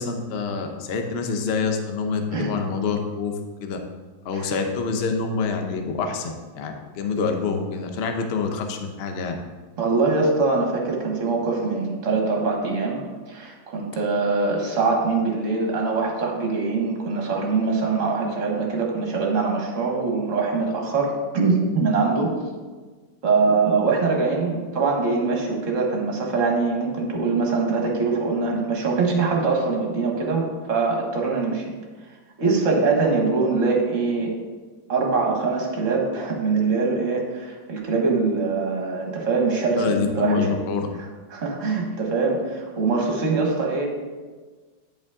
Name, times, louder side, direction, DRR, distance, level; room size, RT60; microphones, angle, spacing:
voice 1, 0.0-3.8 4.2-9.3 39.8-40.9, left 5 dB, 90° left, 4 dB, 0.5 m, -26 dB
voice 2, 9.8-22.3 23.2-31.6 32.4-34.3 34.9-40.5 41.3-43.9, right 4 dB, 45° right, 0 dB, 1.5 m, -23 dB
9.6 x 5.3 x 3.6 m, 1.4 s
omnidirectional pair, 2.2 m